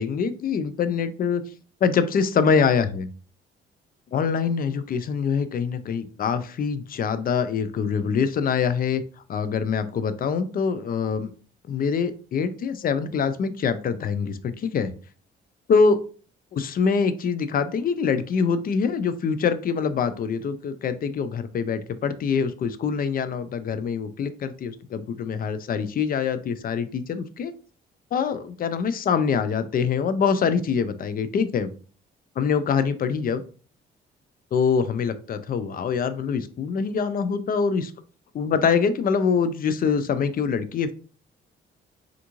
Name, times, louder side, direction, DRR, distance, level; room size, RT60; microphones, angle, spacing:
voice 1, 0.0-1.4 1.8-3.1 4.1-9.0 9.3-11.3 11.7-14.9 15.7-16.0 16.5-27.5 28.1-31.7 32.4-33.4 34.5-37.9 38.3-40.9, left 6 dB, 45° left, 12 dB, 0.4 m, -24 dB
3.4 x 2.5 x 3.0 m, 0.39 s
cardioid pair, 90°, 20 cm